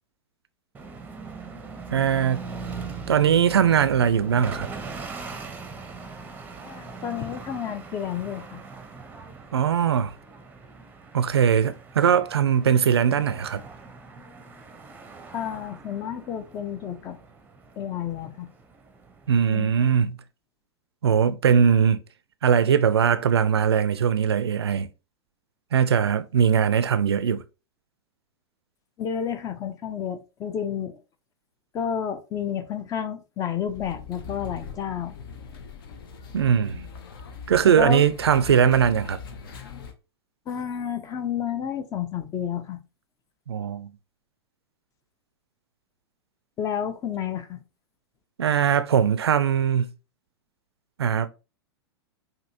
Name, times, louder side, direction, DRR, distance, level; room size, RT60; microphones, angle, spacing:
sound 1, 0.7-19.4, right 4 dB, 15° right, 0.7 m, -41 dB
voice 1, 1.9-2.4 3.1-4.7 9.5-10.1 11.1-13.6 19.3-20.2 21.0-22.0 22.4-24.9 25.7-27.4 36.3-36.9 37.5-39.2 43.5-43.9 48.4-49.9 51.0-51.3, right 8 dB, 70° right, 0.4 m, -20 dB
voice 2, 6.6-8.6 15.3-17.2 17.8-18.5 19.5-19.7 29.0-31.0 31.7-35.1 37.7-38.0 40.5-42.8 46.6-47.6, left 8 dB, 25° left, 0.6 m, -30 dB
sound 2, 33.7-39.9, left 6 dB, 55° left, 0.8 m, -41 dB
5.1 x 2.8 x 2.7 m
figure-of-eight pair, 95°, 14 cm